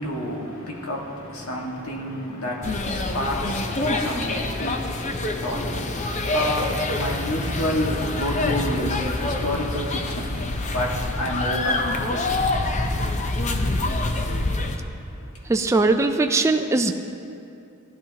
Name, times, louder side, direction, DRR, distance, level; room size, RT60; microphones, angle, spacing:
voice 1, 0.0-10.4 10.7-11.8, left 1 dB, 80° left, -2 dB, 1.7 m, -29 dB
sound 1, 2.6-14.8, left 2 dB, 35° left, 0.7 m, -26 dB
voice 2, 15.5-16.9, right 3 dB, 15° right, 5 dB, 0.3 m, -20 dB
15.5 x 11.5 x 2.9 m, 2.7 s
head